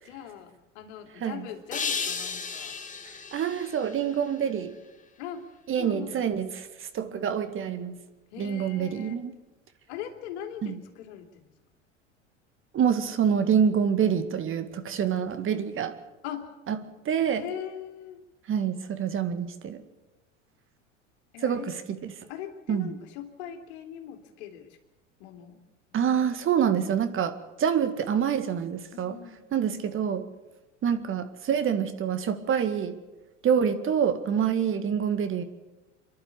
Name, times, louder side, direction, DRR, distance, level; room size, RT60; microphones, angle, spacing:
voice 1, 0.0-2.8 3.9-4.1 4.4-4.5 5.2-6.2 8.3-9.1 9.9-11.4 16.2-16.6 17.4-18.2 21.3-21.7 22.3-24.8 25.2-25.6 25.9-26.0 28.9-29.5, left 9 dB, 60° left, 2.9 m, -41 dB
sound 1, 1.7-4.9, left 5 dB, 20° left, 2.1 m, -35 dB
voice 2, 3.1-4.8 5.7-8.0 8.4-9.3 10.6-10.8 12.7-16.0 16.7-16.8 17.1-17.5 18.5-19.8 21.4-22.0 22.7-22.9 25.9-29.2 29.5-30.3 30.8-33.0 33.4-35.4, right 8 dB, 35° right, 1.9 m, -26 dB
28.5 x 11.5 x 8.5 m
figure-of-eight pair, 80°, 38 cm